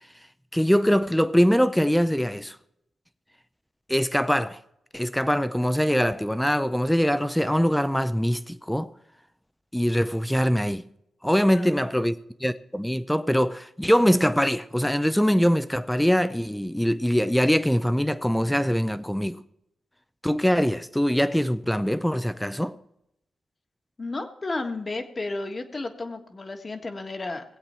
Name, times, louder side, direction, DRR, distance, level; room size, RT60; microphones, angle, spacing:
voice 1, 0.5-2.6 3.9-4.6 4.9-8.9 9.7-10.9 11.2-19.4 20.2-22.8, equal, 5° left, 0.6 m, -23 dB
voice 2, 24.0-27.4, left 2 dB, 35° left, 1.5 m, -32 dB
19.0 x 8.0 x 4.4 m
cardioid pair, 65°, 0 cm